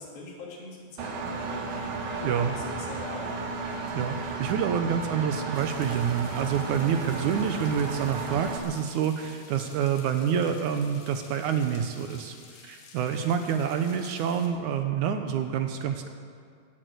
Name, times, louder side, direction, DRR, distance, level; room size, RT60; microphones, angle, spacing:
voice 1, 0.0-3.4, left 2 dB, 80° left, -2 dB, 4.4 m, -42 dB
Engine, 1.0-8.6, right 3 dB, 90° right, 3.1 m, -34 dB
voice 2, 3.9-12.4 12.6-16.1, right 8 dB, 75° right, 6 dB, 2.0 m, -27 dB
sound 1, 5.5-14.5, left 5 dB, 65° left, 3.1 m, -51 dB
16.5 x 8.8 x 7.9 m, 2.1 s
omnidirectional pair, 4.1 m